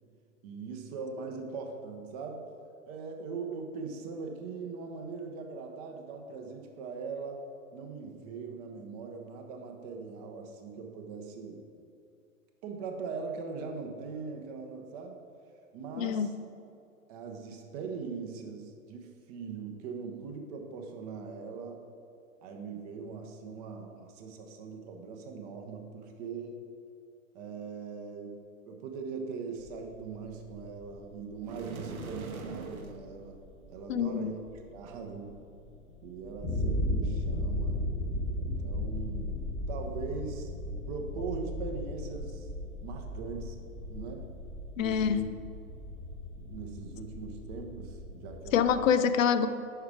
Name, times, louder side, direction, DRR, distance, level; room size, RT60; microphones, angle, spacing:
voice 1, 0.4-2.5 2.8-7.4 7.7-11.6 12.6-15.2 15.7-16.3 17.1-21.8 22.4-26.6 27.3-33.4 33.7-34.4 34.7-35.4 36.0-37.8 38.4-40.5 40.9-42.5 42.8-43.6 43.9-44.3 44.8-45.3 46.3-48.9, right 5 dB, 30° right, 3 dB, 0.6 m, -41 dB
voice 2, 16.0-16.3 33.9-34.3 44.8-45.3 48.5-49.5, left 7 dB, 65° left, 11 dB, 0.5 m, -26 dB
sound 1, 29.6-48.9, left 1 dB, ahead, 0.9 m, -36 dB
sound 2, 31.4-33.0, right 4 dB, 90° right, 0.8 m, -41 dB
5.5 x 4.7 x 4.8 m, 2.5 s
hypercardioid pair, 120°, 42 cm